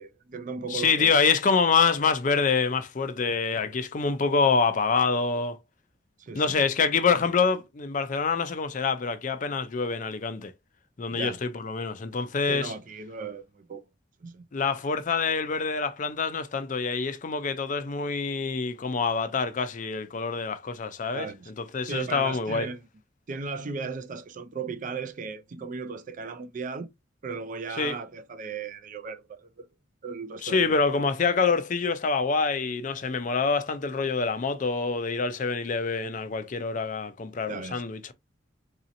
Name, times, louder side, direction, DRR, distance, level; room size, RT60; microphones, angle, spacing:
voice 1, 0.0-1.1 6.2-6.6 11.1-11.4 12.5-13.8 14.2-14.4 21.1-21.5 21.9-22.8 23.3-26.9 27.2-29.7 30.0-30.8 37.5-37.8, right 4 dB, 40° right, 0.4 m, -36 dB
voice 2, 0.7-5.6 6.3-10.5 11.0-12.7 14.5-21.3 21.6-22.7 27.8-28.0 30.4-38.1, left 5 dB, 40° left, 0.4 m, -26 dB
4.0 x 2.8 x 2.5 m
head